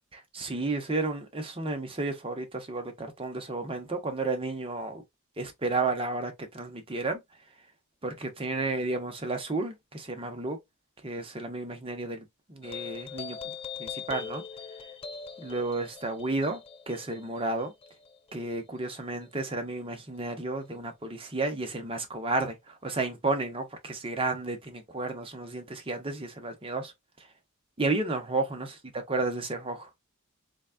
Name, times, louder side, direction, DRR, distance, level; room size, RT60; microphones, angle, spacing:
voice 1, 0.1-5.0 5.4-7.2 8.0-10.6 11.0-13.5 13.8-14.4 15.4-16.6 16.9-17.7 18.3-26.9 27.8-28.7 29.1-29.9, right 3 dB, 25° right, 0.8 m, -32 dB
sound 1, 12.6-19.5, left 6 dB, 25° left, 0.4 m, -42 dB
4.0 x 3.4 x 2.2 m
head